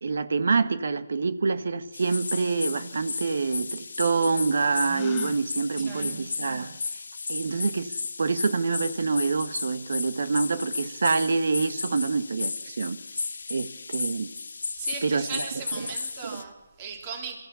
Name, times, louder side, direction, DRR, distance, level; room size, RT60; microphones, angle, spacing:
voice 1, 0.0-6.8 7.3-7.9 8.2-13.0 13.5-14.3 15.0-15.4 16.2-16.4, right 4 dB, 65° right, 12 dB, 1.2 m, -26 dB
sound 1, 1.9-16.4, left 4 dB, 70° left, 1.7 m, -35 dB
Gasp, 4.8-5.4, left 17 dB, 20° left, 0.7 m, -38 dB
voice 2, 14.8-17.4, right 6 dB, 25° right, 4 dB, 3.5 m, -38 dB
22.5 x 15.0 x 8.3 m, 1.1 s
hypercardioid pair, 160°, 0 cm